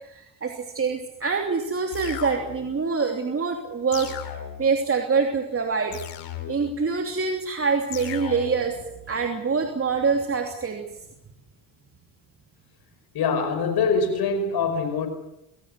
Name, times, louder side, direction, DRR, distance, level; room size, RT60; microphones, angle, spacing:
voice 1, 0.1-4.1 4.6-6.0 6.5-8.7 9.1-10.8, right 5 dB, 35° right, 3.1 m, -25 dB
sound 1, 1.9-2.8 3.9-4.8 5.9-6.8 7.9-8.8, left 11 dB, 80° left, 3.4 m, -36 dB
voice 2, 13.1-15.1, left 5 dB, 65° left, 5.4 m, -24 dB
23.0 x 17.5 x 8.2 m
supercardioid pair, 75°, 41 cm